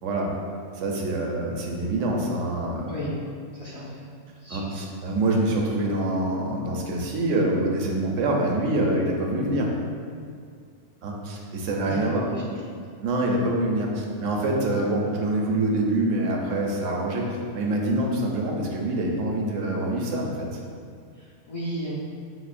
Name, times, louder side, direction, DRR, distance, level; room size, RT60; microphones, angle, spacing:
voice 1, 0.8-2.9 4.5-9.7 11.0-12.3 13.0-20.6, right 1 dB, 85° right, -1 dB, 1.0 m, -25 dB
voice 2, 3.5-4.1 4.4-4.7 11.8-12.6 21.1-22.0, right 1 dB, 40° left, -8 dB, 0.5 m, -34 dB
6.0 x 2.1 x 2.4 m, 2.1 s
omnidirectional pair, 1.2 m